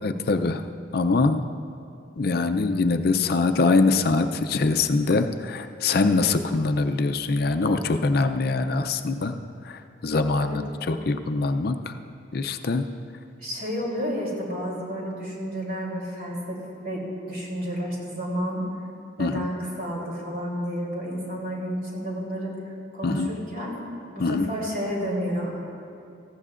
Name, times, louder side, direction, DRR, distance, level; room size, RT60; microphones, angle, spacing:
voice 1, 0.0-0.6 0.9-1.5 2.2-9.3 9.6-12.0 12.3-12.9 19.2-19.5 23.0-23.3 24.2-24.5, left 3 dB, 50° left, 8 dB, 0.5 m, -23 dB
voice 2, 13.4-18.6 19.2-23.8 24.1-25.6, equal, 50° right, -3 dB, 3.2 m, -31 dB
18.5 x 14.5 x 2.5 m, 2.6 s
head